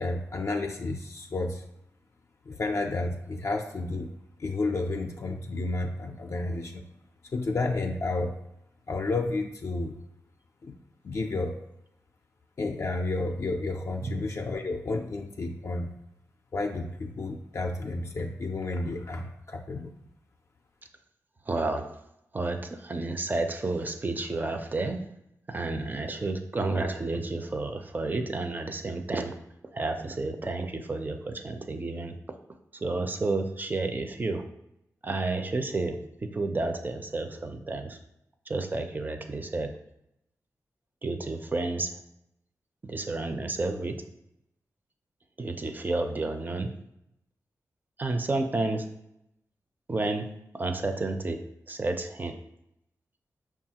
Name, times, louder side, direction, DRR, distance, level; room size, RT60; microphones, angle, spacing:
voice 1, 0.0-1.6 2.5-4.1 4.4-6.9 7.3-8.3 8.9-10.0 10.6-10.7 11.0-11.6 12.6-15.9 16.5-19.9, left 2 dB, 50° left, 2 dB, 0.4 m, -31 dB
voice 2, 21.5-21.9 22.3-25.0 25.5-29.3 29.7-32.2 32.7-34.5 35.0-38.0 38.5-39.7 41.0-42.0 42.8-44.0 45.4-46.7 48.0-48.9 49.9-50.3 50.5-52.4, right 2 dB, 30° right, 6 dB, 0.4 m, -31 dB
5.4 x 2.3 x 2.8 m, 0.81 s
cardioid pair, 70°, 6 cm